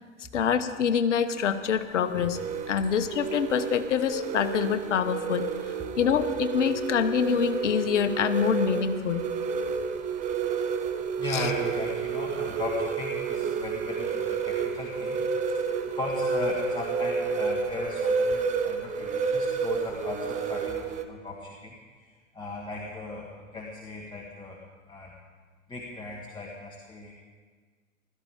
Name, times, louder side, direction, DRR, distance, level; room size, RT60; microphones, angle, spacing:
voice 1, 0.3-2.4 2.7-5.5 6.0-9.2 11.3-11.5, left 7 dB, 65° left, 10 dB, 1.1 m, -25 dB
sound 1, 1.3-21.1, right 5 dB, 20° right, 0.8 m, -30 dB
voice 2, 11.2-15.6 15.9-24.6 24.9-25.1 25.7-27.1, left 3 dB, 10° left, -3 dB, 1.7 m, -37 dB
16.5 x 13.0 x 4.9 m, 1.5 s
figure-of-eight pair, 100°, 39 cm